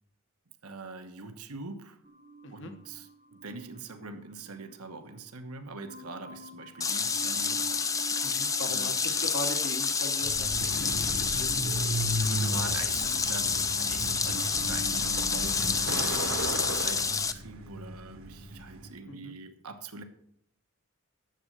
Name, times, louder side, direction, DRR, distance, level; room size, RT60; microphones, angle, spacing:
voice 1, 0.6-2.0 2.5-8.3 8.6-9.3 11.1-11.3 12.1-20.0, right 3 dB, 85° right, 1.2 m, -44 dB
sound 1, 2.0-5.3 5.8-12.6 12.9-16.1, right 3 dB, 35° right, 0.9 m, -49 dB
sound 2, 6.8-17.3, left 5 dB, 15° left, 0.4 m, -29 dB
voice 2, 8.2-11.7 19.1-19.3, left 1 dB, 55° left, 1.0 m, -40 dB
Truck, 10.2-18.9, right 1 dB, 70° right, 1.3 m, -35 dB
10.5 x 7.6 x 6.6 m
head